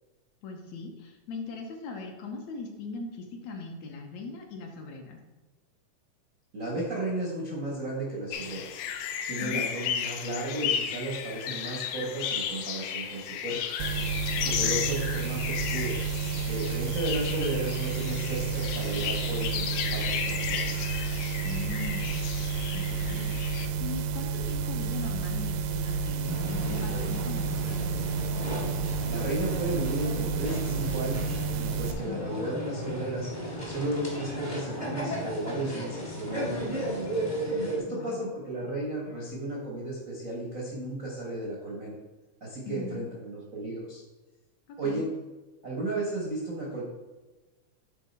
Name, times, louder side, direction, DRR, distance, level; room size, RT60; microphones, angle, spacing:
voice 1, 0.4-5.2 9.4-9.6 14.5-14.8 21.4-22.3 22.7-27.9 32.1-32.2 37.9-38.2 42.7-43.0 44.7-45.0, left 4 dB, 70° left, 2 dB, 1.9 m, -40 dB
voice 2, 6.5-8.8 9.3-13.6 14.4-16.0 16.5-20.8 29.1-37.1 37.8-42.0 42.4-44.0 44.8-45.1 45.6-46.8, right 1 dB, 65° right, -4 dB, 0.8 m, -34 dB
sound 1, 8.3-23.7, left 8 dB, 85° left, 1.5 m, -34 dB
sound 2, 13.8-31.9, right 6 dB, 85° right, 2.2 m, -31 dB
sound 3, 26.2-37.8, equal, 50° left, 0.5 m, -35 dB
9.3 x 4.1 x 4.2 m, 1.2 s
omnidirectional pair, 3.6 m